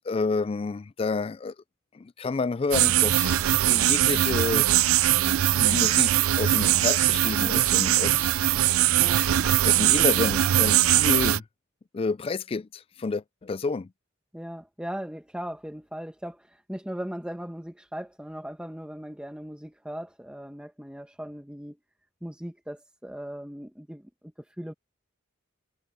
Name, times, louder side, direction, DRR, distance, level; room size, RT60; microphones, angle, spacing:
voice 1, 0.0-1.5 1.9-4.7 5.6-8.4 8.9-9.0 9.6-11.4 11.9-13.9, left 4 dB, 25° left, 0.3 m, -29 dB
sound 1, 2.7-11.4, right 13 dB, 85° right, 0.4 m, -21 dB
voice 2, 9.0-9.3 14.3-21.8 22.2-24.7, equal, 5° right, 1.2 m, -38 dB
head